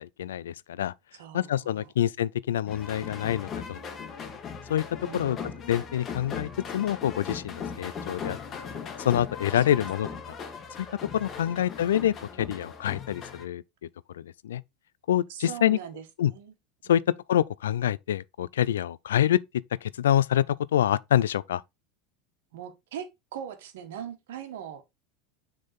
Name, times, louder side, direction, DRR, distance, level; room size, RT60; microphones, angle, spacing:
voice 1, 0.0-0.9 1.3-3.8 4.7-4.8 5.1-5.4 5.7-8.4 9.0-10.1 10.8-10.9 11.1-13.6 14.1-14.6 15.1-15.8 16.2-16.3 16.9-17.0 17.3-19.4 19.8-21.6, left 11 dB, 85° left, 0.3 m, -26 dB
voice 2, 1.1-1.9 5.0-5.6 9.5-9.8 10.0-10.2 11.6-11.7 15.3-16.5 22.5-24.9, right 9 dB, 75° right, 1.4 m, -41 dB
sound 1, 2.7-13.4, left 6 dB, 35° left, 1.4 m, -38 dB
6.4 x 3.8 x 4.0 m
hypercardioid pair, 95°, 0 cm